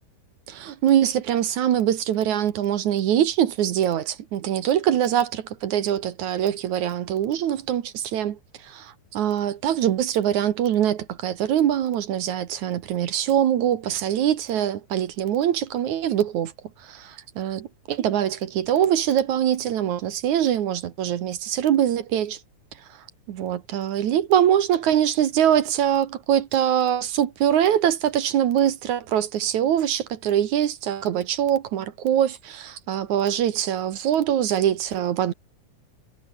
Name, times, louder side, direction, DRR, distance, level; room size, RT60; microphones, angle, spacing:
voice 1, 0.5-16.5 16.8-22.4 23.3-35.3, right 10 dB, 65° right, 2.6 m, -23 dB
omnidirectional pair, 3.8 m